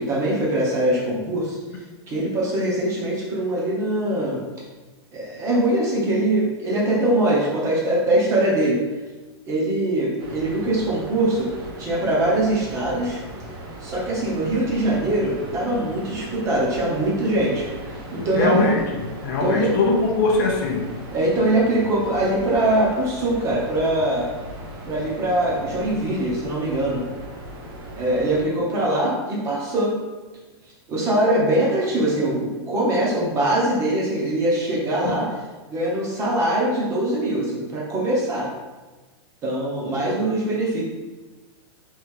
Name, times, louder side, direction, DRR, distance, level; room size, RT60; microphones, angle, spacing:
voice 1, 0.0-1.6 2.1-4.4 5.1-8.8 9.5-13.2 13.8-17.7 18.1-18.7 19.4-19.7 21.1-24.3 24.9-27.1 28.0-29.9 30.9-35.3 35.7-38.5 39.4-40.8, right 1 dB, 20° right, -4 dB, 0.9 m, -22 dB
sound 1, 10.2-28.4, right 1 dB, 55° right, 1.0 m, -38 dB
voice 2, 18.4-18.8 19.2-20.9 35.0-35.2, left 3 dB, 45° left, 0 dB, 0.6 m, -21 dB
3.3 x 3.1 x 3.7 m, 1.2 s
supercardioid pair, 160°, 15 cm